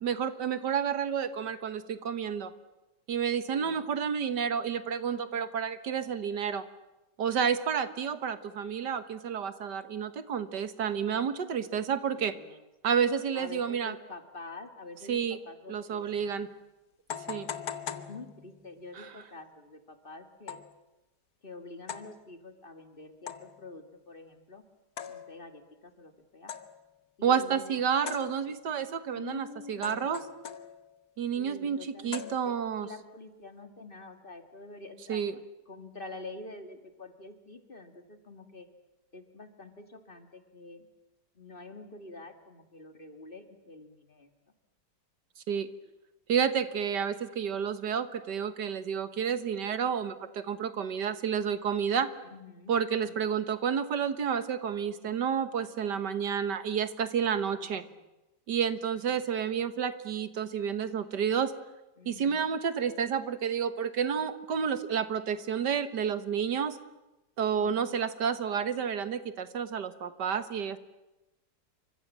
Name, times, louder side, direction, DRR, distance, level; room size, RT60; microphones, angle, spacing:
voice 1, 0.0-2.5 3.1-6.7 7.2-12.3 12.8-13.9 15.1-15.4 15.7-16.5 17.3-17.5 27.2-30.2 31.2-31.8 32.0-32.9 35.1-35.3 45.5-45.7 46.3-52.1 52.7-57.8 58.5-61.5 62.1-66.8 67.4-70.8, right 7 dB, 80° right, 12 dB, 1.9 m, -30 dB
voice 2, 3.6-3.9 12.0-12.7 13.3-16.4 17.6-20.6 21.4-24.6 25.1-26.5 27.2-27.8 29.1-30.2 31.4-35.3 35.7-38.7 39.1-40.9 41.3-44.3 52.2-52.8 53.1-53.5 57.5-58.0 58.6-59.0 62.0-62.4 67.6-68.0, left 2 dB, 30° left, 7 dB, 2.4 m, -47 dB
sound 1, 16.1-16.2 17.1-18.8 20.5-20.8 21.9-22.2 23.3-23.7 25.0-25.6 26.5-26.9 28.1-28.8 29.8-31.0 32.1-32.8, left 7 dB, 60° left, 1.7 m, -41 dB
28.5 x 25.0 x 7.5 m, 1.0 s
omnidirectional pair, 1.8 m